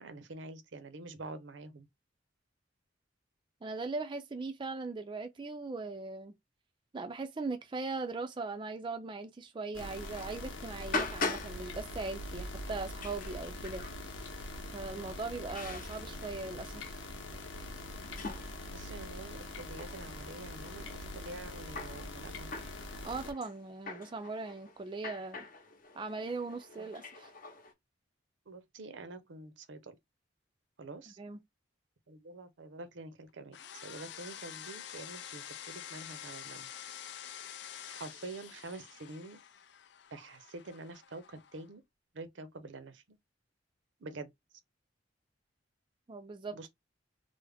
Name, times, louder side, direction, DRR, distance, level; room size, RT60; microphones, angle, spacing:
voice 1, 0.0-1.9 14.9-15.2 18.7-22.5 26.8-27.0 28.5-29.9 30.8-31.2 32.1-36.7 37.9-39.4 40.1-41.8 42.1-43.2 44.0-44.3 46.5-46.7, right 2 dB, 75° right, 0.6 m, -47 dB
voice 2, 3.6-6.3 6.9-13.8 14.7-17.0 23.0-25.5 25.9-27.3 31.1-31.4 46.1-46.7, right 3 dB, 25° right, 0.4 m, -39 dB
sound 1, 9.7-23.3, left 1 dB, 85° left, 0.9 m, -43 dB
sound 2, 9.9-27.7, left 3 dB, 45° left, 0.8 m, -43 dB
sound 3, 33.5-41.7, left 10 dB, 60° left, 0.4 m, -47 dB
3.4 x 2.0 x 3.4 m
head